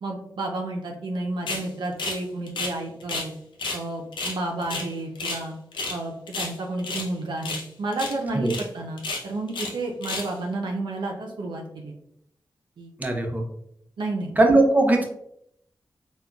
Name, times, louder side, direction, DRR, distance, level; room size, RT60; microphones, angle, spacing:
voice 1, 0.0-3.3 3.7-5.5 5.9-11.9 12.8-12.9 14.0-14.4, right 2 dB, 80° right, 1 dB, 0.5 m, -31 dB
sound 1, 1.5-1.7 2.0-3.3 3.6-3.8 4.1-5.4 5.7-6.0 6.3-7.1 7.4-7.7 7.9-8.2 8.4-8.6 9.0-9.7 10.0-10.3, left 3 dB, 90° left, 0.5 m, -31 dB
voice 2, 13.0-13.4 14.4-15.0, right 2 dB, 20° right, 2 dB, 0.7 m, -19 dB
3.6 x 2.2 x 2.2 m, 0.73 s
cardioid pair, 40°, 8 cm